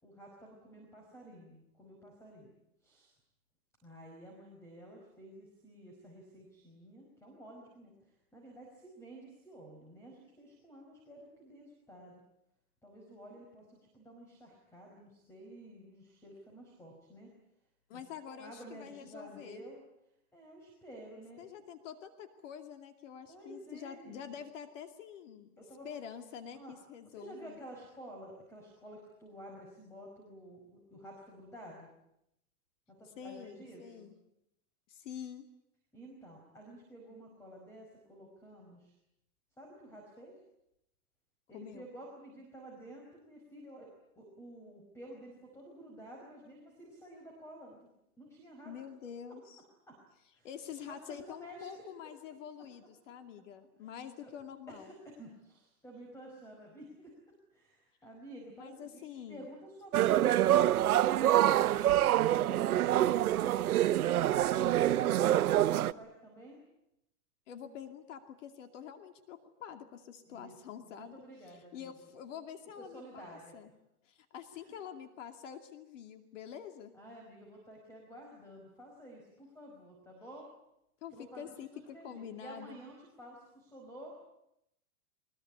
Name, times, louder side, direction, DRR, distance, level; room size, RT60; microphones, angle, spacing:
voice 1, 0.0-2.5 2.8-3.1 3.8-12.2 12.8-17.3 17.9-18.0 18.3-19.8 20.3-21.5 23.2-24.3 25.6-25.9 26.5-26.7 27.0-31.9 32.9-34.1 35.9-38.9 39.6-40.4 41.5-43.9 44.2-47.9 48.2-48.7 49.9-50.0 50.3-52.1 53.8-53.9 54.2-54.3 54.7-57.2 57.5-63.3 63.8-66.6 70.3-72.1 72.8-73.6 74.5-74.7 76.9-80.5 81.1-84.2, right 1 dB, 5° left, 0 dB, 5.0 m, -51 dB
voice 2, 17.9-19.6 21.4-25.5 25.8-27.6 33.0-34.1 34.9-35.5 41.5-41.9 48.6-49.6 50.4-54.9 58.6-59.5 67.5-71.1 71.5-73.7 74.0-76.9 81.0-82.8, left 8 dB, 55° left, 7 dB, 2.5 m, -47 dB
sound 1, 59.9-65.9, right 13 dB, 85° right, 1.1 m, -26 dB
23.0 x 21.5 x 9.9 m, 0.82 s
supercardioid pair, 160°, 44 cm